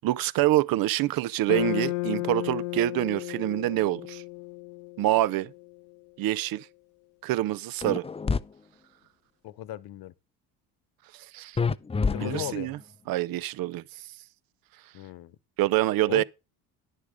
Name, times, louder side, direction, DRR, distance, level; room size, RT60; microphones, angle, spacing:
voice 1, 0.0-4.2 5.0-5.5 6.2-6.7 7.2-8.1 11.1-11.6 12.2-12.8 13.1-13.8 15.6-16.2, right 15 dB, 60° right, 0.6 m, -26 dB
sound 1, 1.5-5.8, left 23 dB, 85° left, 0.6 m, -33 dB
sound 2, 7.8-8.4 11.6-12.7, left 4 dB, 15° left, 0.5 m, -27 dB
voice 2, 9.4-10.1 12.1-12.7 14.9-15.4 16.1-16.2, left 14 dB, 65° left, 1.0 m, -36 dB
11.0 x 6.6 x 5.1 m
supercardioid pair, 70°, 40 cm